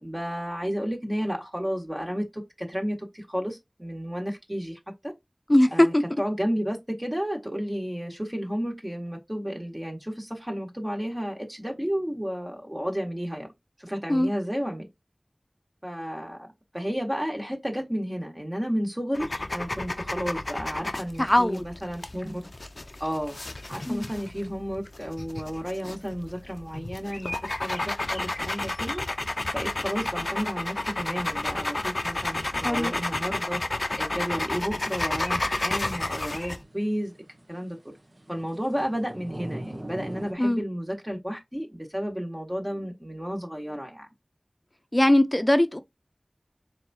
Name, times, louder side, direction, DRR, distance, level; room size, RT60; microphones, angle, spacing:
voice 1, 0.0-5.1 5.7-5.9 6.2-13.5 13.8-14.9 15.8-22.4 23.0-23.4 23.7-29.0 29.5-33.6 34.0-37.1 37.5-37.9 38.3-44.1, equal, 20° right, 1.5 m, -32 dB
voice 2, 5.5-6.0 14.1-14.3 21.2-21.6 23.9-24.1 32.6-32.9 40.4-40.6 44.9-45.8, left 1 dB, 25° left, 0.7 m, -21 dB
sound 1, 19.1-36.6, left 2 dB, 70° left, 0.5 m, -31 dB
sound 2, 35.2-40.3, right 1 dB, 50° right, 1.0 m, -42 dB
4.6 x 3.5 x 2.8 m
wide cardioid pair, 45°, 0 cm